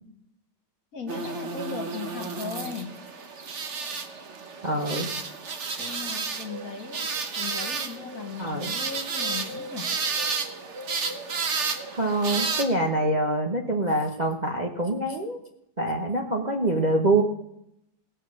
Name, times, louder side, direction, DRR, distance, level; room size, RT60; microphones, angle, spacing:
voice 1, 0.9-2.9 5.8-9.9, left 5 dB, 55° left, 4 dB, 2.0 m, -37 dB
sound 1, 1.1-12.6, right 4 dB, 45° right, 1.2 m, -32 dB
voice 2, 4.6-5.1 8.4-8.7 11.9-15.4 15.8-17.2, right 2 dB, 30° right, 1 dB, 1.0 m, -25 dB
18.5 x 6.9 x 6.4 m, 0.78 s
omnidirectional pair, 1.8 m